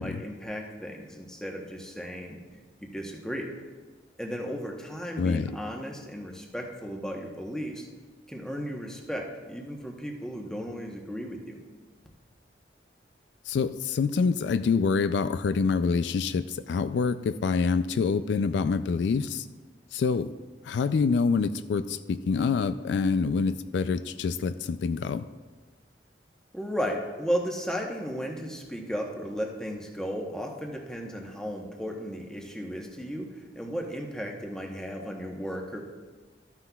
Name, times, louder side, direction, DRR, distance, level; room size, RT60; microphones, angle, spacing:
voice 1, 0.0-2.4 2.8-3.5 4.2-7.9 8.3-11.6 26.5-35.8, equal, 5° left, 0 dB, 0.9 m, -35 dB
voice 2, 5.2-5.5 13.5-19.5 19.9-20.3 20.7-25.2, left 5 dB, 75° left, 12 dB, 0.3 m, -26 dB
13.5 x 9.6 x 2.3 m, 1.4 s
head